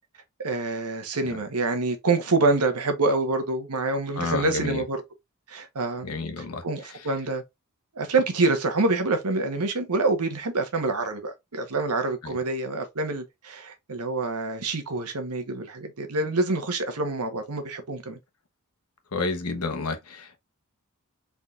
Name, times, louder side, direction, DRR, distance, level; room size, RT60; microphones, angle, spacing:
voice 1, 0.4-5.0 5.5-6.1 6.4-7.4 7.9-18.2, right 3 dB, 85° right, 1.1 m, -26 dB
voice 2, 4.2-4.8 6.0-6.6 12.2-12.3 19.1-20.4, left 3 dB, 80° left, 1.0 m, -30 dB
4.2 x 3.6 x 2.4 m
head